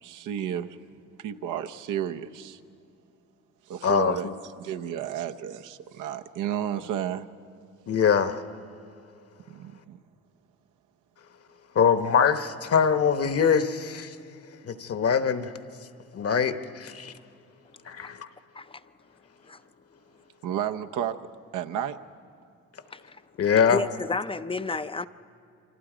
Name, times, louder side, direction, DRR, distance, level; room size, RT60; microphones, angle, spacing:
voice 1, 0.0-0.8 1.1-2.6 3.7-7.3 9.5-10.0 20.4-22.0, right 10 dB, 85° right, 0.8 m, -32 dB
voice 2, 3.8-4.3 7.9-8.4 11.7-14.1 14.7-15.5 16.1-17.1 17.9-18.3 23.4-23.8, left 7 dB, 50° left, 1.1 m, -23 dB
voice 3, 22.9-23.2 23.7-25.1, left 4 dB, 20° left, 0.4 m, -32 dB
28.5 x 25.0 x 5.0 m
cardioid pair, 90°, 30 cm